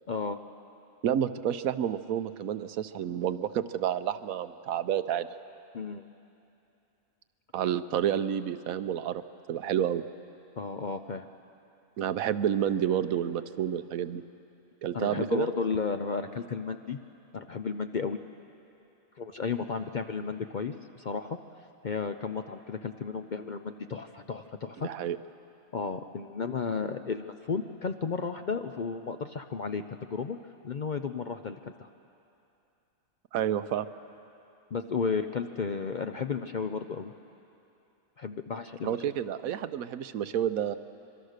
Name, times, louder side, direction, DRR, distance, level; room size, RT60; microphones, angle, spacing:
voice 1, 0.1-0.4 5.7-6.0 10.6-11.3 14.9-17.0 17.3-18.2 19.2-21.4 21.8-24.9 25.7-30.4 30.6-31.9 34.7-37.1 38.2-39.0, left 5 dB, 50° left, 7 dB, 0.5 m, -33 dB
voice 2, 1.0-5.3 7.5-9.2 9.5-10.0 12.0-14.2 14.8-15.5 24.8-25.2 33.3-33.9 38.8-40.8, right 10 dB, 85° right, 12 dB, 1.2 m, -29 dB
25.5 x 23.5 x 6.6 m, 2.8 s
omnidirectional pair, 1.4 m